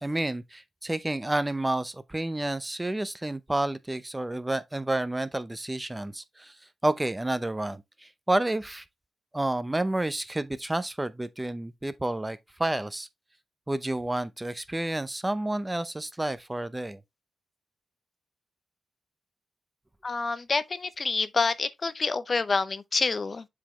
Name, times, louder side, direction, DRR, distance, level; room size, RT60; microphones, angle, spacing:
voice 1, 0.0-6.5 6.8-8.8 9.3-13.1 13.7-17.0, right 1 dB, 15° right, 0.6 m, -30 dB
voice 2, 20.0-23.5, left 4 dB, 40° left, 0.4 m, -27 dB
7.3 x 4.2 x 3.0 m
wide cardioid pair, 110°, 0 cm